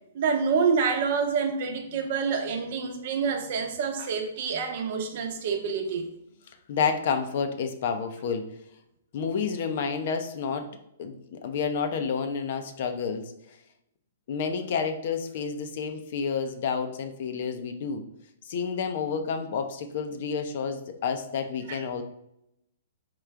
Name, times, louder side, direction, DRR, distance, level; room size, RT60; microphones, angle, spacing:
voice 1, 0.1-6.1 21.7-21.8, right 5 dB, 55° right, 5 dB, 0.7 m, -27 dB
voice 2, 6.7-8.5 9.1-10.7 11.0-13.3 14.3-18.0 18.4-22.0, left 6 dB, 55° left, 7 dB, 0.5 m, -30 dB
3.7 x 2.3 x 4.4 m, 0.81 s
hypercardioid pair, 130°, 0 cm